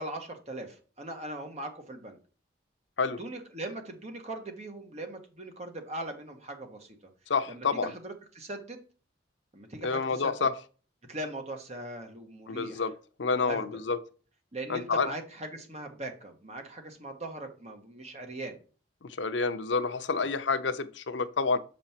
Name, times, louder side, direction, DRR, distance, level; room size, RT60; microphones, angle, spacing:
voice 1, 0.0-2.2 3.0-7.0 7.5-8.8 9.5-10.3 11.1-12.9 13.3-13.6 14.5-18.6 20.1-20.3, right 1 dB, 35° right, 1.5 m, -40 dB
voice 2, 7.3-7.9 9.8-10.5 12.5-12.9 13.2-14.0 14.7-15.1 19.0-21.6, left 4 dB, 75° left, 0.7 m, -28 dB
7.3 x 5.4 x 4.4 m
head